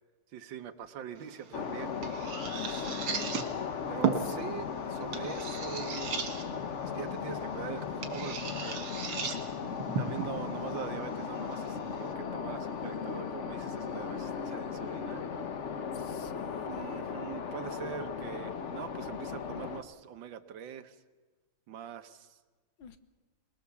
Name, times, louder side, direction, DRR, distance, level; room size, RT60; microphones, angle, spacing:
voice 1, 0.3-2.2 2.9-3.0 3.9-6.1 6.9-8.8 10.0-15.3 16.4-21.0 21.7-22.4, right 9 dB, 65° right, 9 dB, 1.6 m, -43 dB
sound 1, 1.2-12.1, right 6 dB, 85° right, 2.7 m, -38 dB
sound 2, 1.5-19.8, left 6 dB, 50° left, 0.9 m, -37 dB
voice 2, 2.5-3.5 16.1-16.8 22.8-23.0, left 8 dB, 75° left, 10 dB, 1.9 m, -47 dB
23.0 x 20.5 x 7.1 m, 1.4 s
omnidirectional pair, 2.3 m